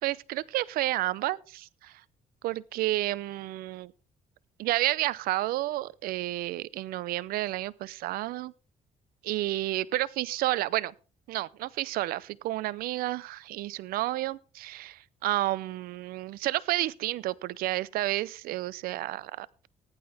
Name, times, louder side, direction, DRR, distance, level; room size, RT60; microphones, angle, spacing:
voice 1, 0.0-2.0 2.4-3.9 4.6-8.5 9.2-10.9 11.3-19.7, right 16 dB, 85° right, 0.6 m, -31 dB
15.0 x 10.5 x 3.4 m
cardioid pair, 90°, 15 cm